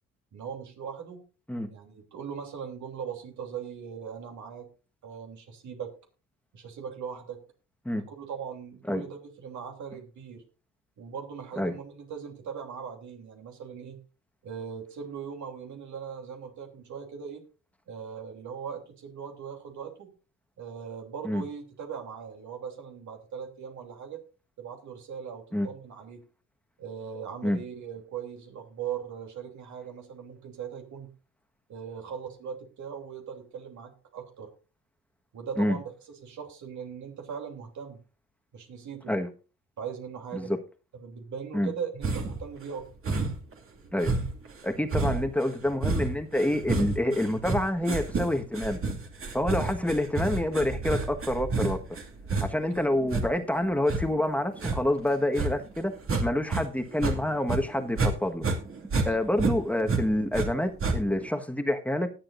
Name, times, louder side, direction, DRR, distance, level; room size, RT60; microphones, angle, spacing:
voice 1, 0.3-1.2 1.7-4.7 5.0-5.9 6.5-7.4 7.9-10.4 11.0-14.0 14.4-17.4 17.9-20.1 20.6-24.2 24.6-26.2 26.8-31.1 31.7-34.5 35.3-38.0 38.5-39.2 39.8-40.5 40.9-42.9 59.0-59.3, right 7 dB, 70° right, 3.0 m, -39 dB
sound 1, 42.0-42.5 43.0-43.5 44.0-56.6 56.9-58.1 58.4-60.5 60.8-61.3, right 3 dB, 45° right, 2.4 m, -30 dB
voice 2, 44.6-48.8 49.3-51.8 52.4-58.4 59.0-62.1, left 1 dB, 5° left, 1.4 m, -27 dB
19.5 x 7.7 x 2.6 m
cardioid pair, 90°, 30 cm